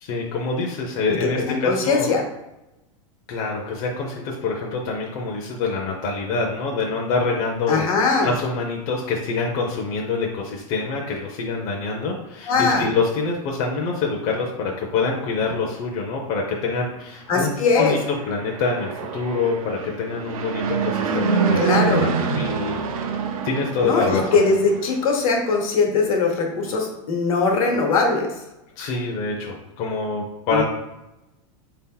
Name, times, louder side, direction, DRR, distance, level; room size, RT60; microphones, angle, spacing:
voice 1, 0.0-2.1 3.3-7.9 8.2-18.0 18.3-22.8 23.4-24.4 28.8-30.6, left 4 dB, 40° left, 0 dB, 0.5 m, -26 dB
voice 2, 1.4-2.2 7.7-8.3 12.5-12.9 17.3-17.9 21.6-22.1 23.8-28.3 30.5-30.6, left 4 dB, 85° left, 1 dB, 1.1 m, -20 dB
Fixed-wing aircraft airplane, 17.7-25.1, right 5 dB, 90° right, 0.6 m, -26 dB
3.8 x 2.8 x 3.7 m, 0.96 s
supercardioid pair, 165°, 18 cm